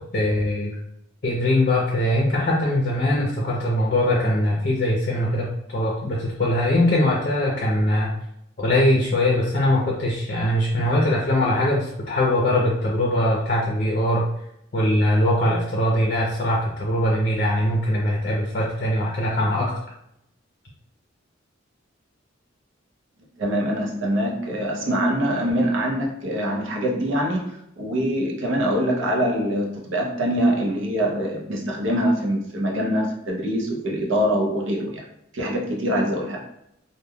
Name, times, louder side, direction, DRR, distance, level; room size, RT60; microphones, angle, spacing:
voice 1, 0.1-0.7 1.2-8.1 8.6-14.3 14.7-19.7, left 1 dB, 45° left, -3 dB, 0.5 m, -21 dB
voice 2, 23.4-35.0 35.3-36.5, equal, 75° right, 0 dB, 0.6 m, -24 dB
3.3 x 2.2 x 2.2 m, 0.78 s
head